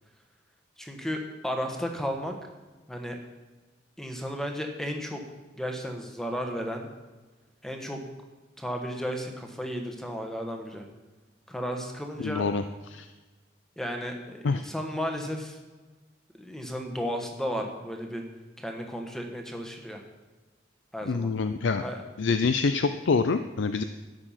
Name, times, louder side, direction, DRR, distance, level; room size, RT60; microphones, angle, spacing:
voice 1, 0.8-2.3 2.9-3.2 4.0-5.2 5.5-6.9 7.6-8.0 8.6-10.9 11.5-12.4 13.8-15.6 16.4-18.2 18.6-20.0 20.9-21.3 21.8-22.0, equal, 5° left, 3 dB, 1.3 m, -34 dB
voice 2, 12.2-12.6 12.9-13.1 14.4-14.6 21.1-21.8 22.2-23.8, left 4 dB, 85° left, 9 dB, 0.5 m, -26 dB
12.0 x 8.7 x 5.8 m, 1.3 s
head